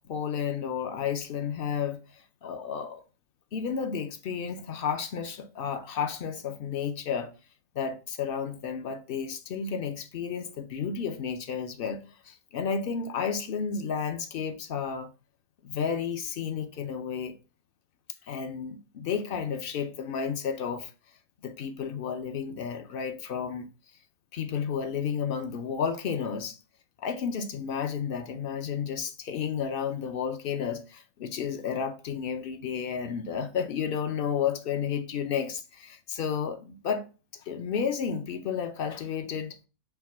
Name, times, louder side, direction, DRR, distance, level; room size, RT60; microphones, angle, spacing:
voice 1, 0.0-3.0 3.5-7.3 7.7-15.1 15.6-17.3 18.3-20.9 21.4-23.7 24.3-26.6 27.0-37.0 37.3-39.6, left 7 dB, 65° left, 0.6 m, -32 dB
4.5 x 2.2 x 4.2 m
omnidirectional pair, 1.4 m